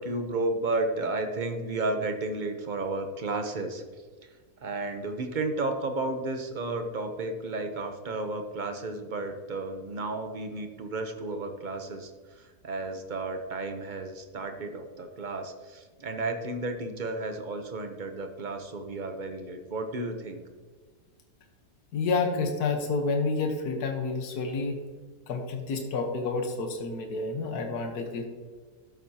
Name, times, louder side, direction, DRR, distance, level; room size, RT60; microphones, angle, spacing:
voice 1, 0.0-3.8 4.2-20.4, right 2 dB, 40° right, 6 dB, 0.7 m, -33 dB
voice 2, 21.9-24.8 25.3-28.3, left 4 dB, 75° left, 4 dB, 1.6 m, -29 dB
12.0 x 7.9 x 2.8 m, 1.4 s
omnidirectional pair, 1.7 m